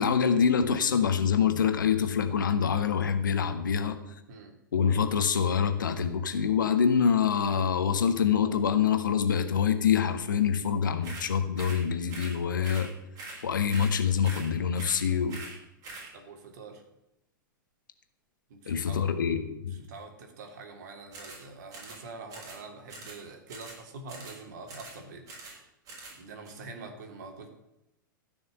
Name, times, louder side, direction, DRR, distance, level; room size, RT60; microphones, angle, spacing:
voice 1, 0.0-4.0 4.7-12.9 13.4-15.4 18.7-19.8, left 7 dB, 65° left, 9 dB, 1.5 m, -25 dB
sound 1, 11.0-11.3 11.6-11.8 12.1-12.4 12.6-12.9 13.1-13.4 13.7-14.0 14.2-14.5 14.8-15.0 15.3-15.6 15.8-16.1 21.1-21.4 21.7-22.0 22.3-22.6 22.9-23.2 23.5-23.8 24.1-24.4 24.7-25.0 25.3-25.6 25.9-26.2 26.4-26.5, right 3 dB, 30° right, 6.4 m, -43 dB
voice 2, 16.1-16.8 18.5-19.1 19.8-25.7 26.1-27.5, right 3 dB, 55° right, 4 dB, 3.2 m, -45 dB
15.0 x 6.4 x 9.3 m, 0.89 s
figure-of-eight pair, 100°, 11 cm